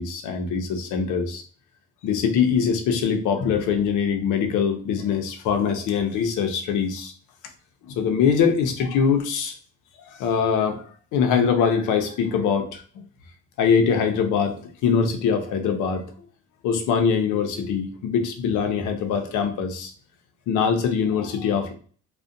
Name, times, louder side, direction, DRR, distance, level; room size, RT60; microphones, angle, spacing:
voice 1, 0.0-1.4 2.0-7.1 7.9-9.5 10.2-10.8 11.1-12.8 13.6-14.6 14.8-16.1 16.6-19.9 20.5-21.7, left 6 dB, 85° left, 5 dB, 0.5 m, -23 dB
2.4 x 2.1 x 2.5 m, 0.43 s
cardioid pair, 90°, 30 cm